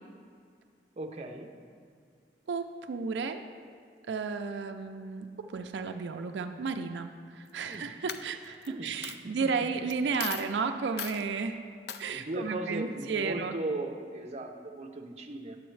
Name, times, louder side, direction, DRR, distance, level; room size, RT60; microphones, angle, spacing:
voice 1, 1.0-1.5 7.7-7.9 8.7-8.9 9.2-9.3 12.1-15.6, right 2 dB, 35° right, 3 dB, 0.6 m, -37 dB
voice 2, 2.5-3.4 4.1-11.6 12.0-13.5, right 5 dB, 85° right, 6 dB, 0.4 m, -33 dB
Coin (dropping), 7.5-7.7 8.1-8.7 9.0-9.2 9.9-10.0 10.2-10.5 11.0-11.2 11.9-12.0, left 8 dB, 60° left, 0.4 m, -37 dB
10.5 x 7.8 x 3.2 m, 2.2 s
head